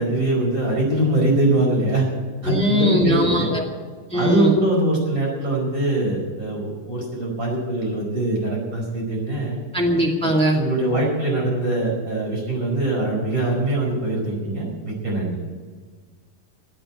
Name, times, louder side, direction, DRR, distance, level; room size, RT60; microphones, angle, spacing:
voice 1, 0.0-2.1 2.4-3.5 4.1-9.6 10.2-15.4, right 1 dB, 20° right, -2 dB, 5.1 m, -22 dB
voice 2, 2.4-3.6 4.1-4.6 9.7-10.6, equal, 5° left, -1 dB, 1.0 m, -20 dB
14.5 x 8.8 x 8.8 m, 1.5 s
omnidirectional pair, 4.2 m